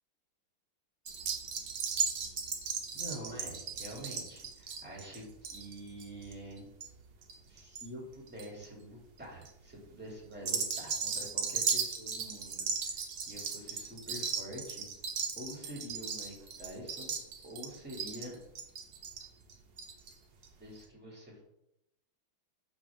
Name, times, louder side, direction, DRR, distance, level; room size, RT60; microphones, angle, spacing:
sound 1, 1.1-7.8 8.1-8.6 9.2-9.5 10.3-20.1 20.4-20.5 20.8-20.9, right 6 dB, 55° right, 1.4 m, -36 dB
voice 1, 2.9-6.7 7.5-14.9 15.4-17.1 17.4-18.4 20.6-21.4, equal, 5° right, -3 dB, 2.5 m, -46 dB
8.5 x 6.3 x 3.6 m, 0.83 s
omnidirectional pair, 2.4 m